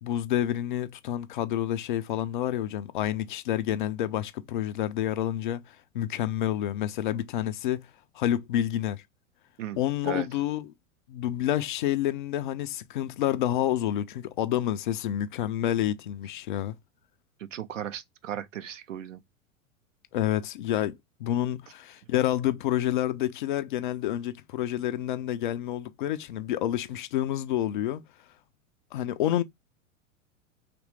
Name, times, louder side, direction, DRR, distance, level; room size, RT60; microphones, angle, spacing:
voice 1, 0.0-7.9 8.1-9.0 9.8-10.7 11.1-16.8 20.1-28.0 28.9-29.4, left 12 dB, 40° left, 0.4 m, -29 dB
voice 2, 9.6-10.3 17.4-19.2, right 9 dB, 65° right, 0.7 m, -36 dB
4.2 x 3.2 x 3.1 m
figure-of-eight pair, 90°, 42 cm